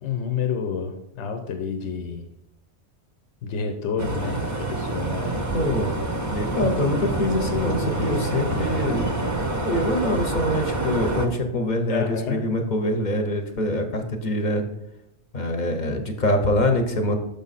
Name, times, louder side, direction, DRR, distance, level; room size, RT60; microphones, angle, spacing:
voice 1, 0.0-2.3 3.4-4.4 4.7-5.5 8.6-8.9 11.9-12.4, left 6 dB, 85° left, 5 dB, 1.0 m, -29 dB
sound 1, 4.0-11.3, right 2 dB, 30° right, 0.3 m, -27 dB
voice 2, 5.5-9.1 9.6-14.6 15.3-17.1, left 1 dB, 45° left, 4 dB, 0.8 m, -24 dB
6.7 x 5.3 x 4.0 m, 0.84 s
omnidirectional pair, 1.1 m